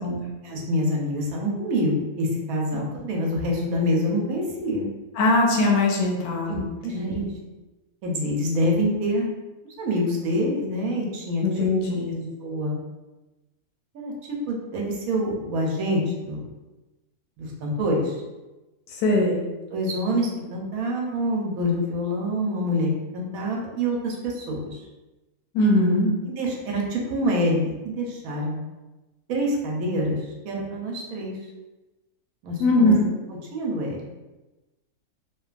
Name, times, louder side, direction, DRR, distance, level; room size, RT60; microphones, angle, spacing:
voice 1, 0.4-4.9 6.5-7.2 8.0-9.3 9.8-11.4 12.4-12.8 13.9-14.1 14.5-16.4 17.4-18.2 19.7-24.8 26.4-28.6 29.3-31.4 32.4-32.9 33.3-34.0, equal, 75° right, -1 dB, 1.0 m, -26 dB
voice 2, 5.2-6.6 6.9-7.3 11.4-12.2 19.0-19.4 25.5-26.1 32.6-33.1, left 2 dB, 70° left, -1 dB, 1.0 m, -21 dB
2.8 x 2.2 x 2.4 m, 1.1 s
omnidirectional pair, 1.6 m